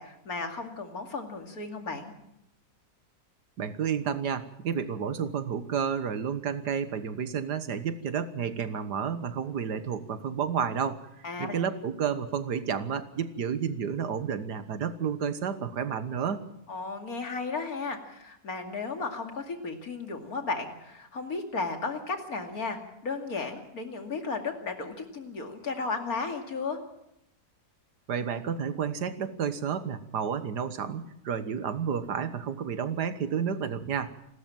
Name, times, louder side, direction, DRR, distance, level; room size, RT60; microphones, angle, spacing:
voice 1, 0.0-2.1 11.2-11.6 16.7-26.8, left 4 dB, 60° left, 5 dB, 2.9 m, -34 dB
voice 2, 3.6-16.4 28.1-34.1, right 7 dB, 85° right, 11 dB, 1.9 m, -31 dB
28.5 x 13.0 x 7.6 m, 0.82 s
omnidirectional pair, 1.7 m